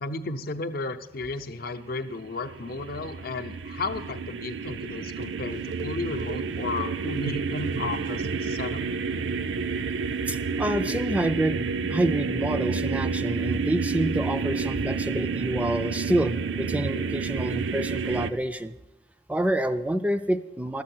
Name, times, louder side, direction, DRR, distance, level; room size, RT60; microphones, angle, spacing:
voice 1, 0.0-8.8, left 3 dB, 55° left, 9 dB, 0.6 m, -33 dB
sound 1, 1.9-18.3, right 5 dB, 70° right, 0.4 m, -30 dB
voice 2, 10.3-18.7 19.3-20.8, right 1 dB, 10° right, 10 dB, 0.4 m, -27 dB
12.5 x 7.5 x 6.1 m, 1.0 s
head